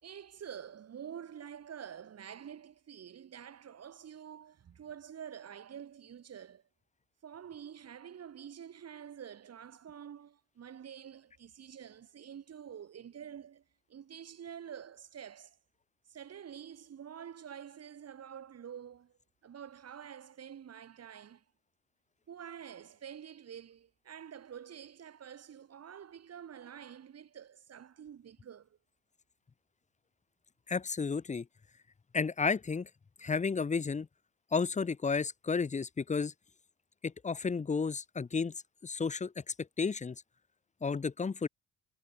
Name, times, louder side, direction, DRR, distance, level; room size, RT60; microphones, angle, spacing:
voice 1, 0.0-6.6 7.2-13.6 13.9-15.6 16.1-21.4 22.3-28.8, right 8 dB, 55° right, 4.3 m, -48 dB
voice 2, 30.7-31.4 32.1-32.9 33.2-34.1 34.5-36.3 37.0-38.5 38.8-39.3 39.8-40.1 40.8-41.5, left 5 dB, 25° left, 0.9 m, -32 dB
cardioid pair, 90°, 30 cm